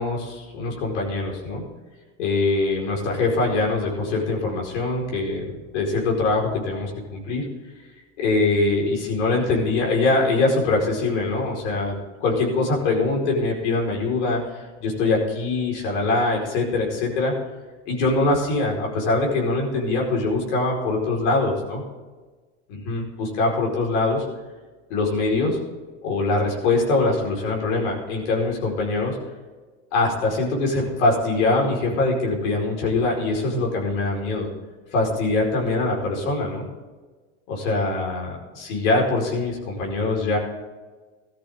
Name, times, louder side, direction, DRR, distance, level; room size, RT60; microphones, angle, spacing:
voice 1, 0.0-1.6 2.2-7.4 8.2-14.4 14.8-17.3 17.9-21.8 22.7-24.2 24.9-25.6 26.0-29.1 29.9-34.5 34.9-36.7 37.5-40.4, left 3 dB, 75° left, -1 dB, 5.0 m, -23 dB
15.5 x 13.0 x 3.8 m, 1.3 s
supercardioid pair, 115°, 34 cm